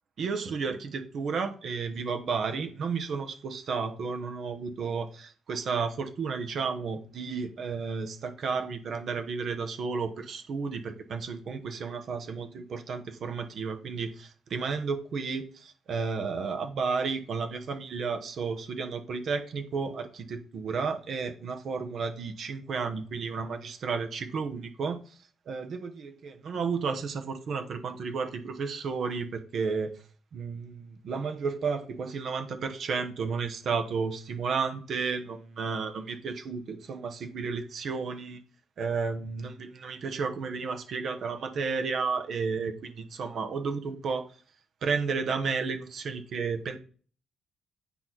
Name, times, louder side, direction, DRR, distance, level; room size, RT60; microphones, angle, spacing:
voice 1, 0.2-25.2 25.5-29.9 30.3-38.4 38.8-44.2 44.8-46.8, right 5 dB, 60° right, 1.1 m, -32 dB
8.5 x 4.4 x 4.0 m
cardioid pair, 90°, 0 cm